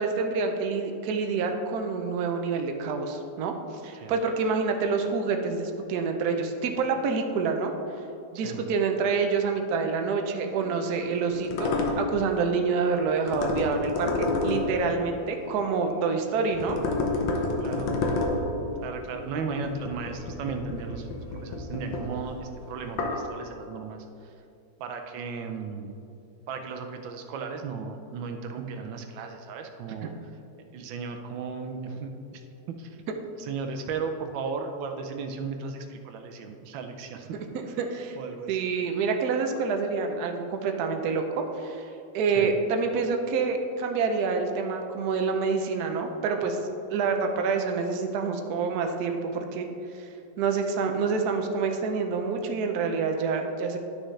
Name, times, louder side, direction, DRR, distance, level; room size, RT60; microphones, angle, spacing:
voice 1, 0.0-3.5 3.8-7.7 8.3-11.7 12.0-16.8 37.5-38.2 38.5-41.8 42.1-46.6 46.9-49.7 49.9-50.1 50.4-53.8, right 5 dB, 65° right, 4 dB, 1.1 m, -27 dB
sound 1, 10.5-16.0 16.4-23.3, left 3 dB, 85° left, 1.6 m, -31 dB
voice 2, 17.6-18.0 18.8-24.3 24.8-26.0 26.5-30.1 30.7-32.4 32.8-33.0 33.4-37.3 37.7-37.8 38.2-38.7 42.3-42.5, right 5 dB, 90° right, 5 dB, 1.4 m, -35 dB
11.5 x 6.3 x 3.2 m, 2.6 s
omnidirectional pair, 2.0 m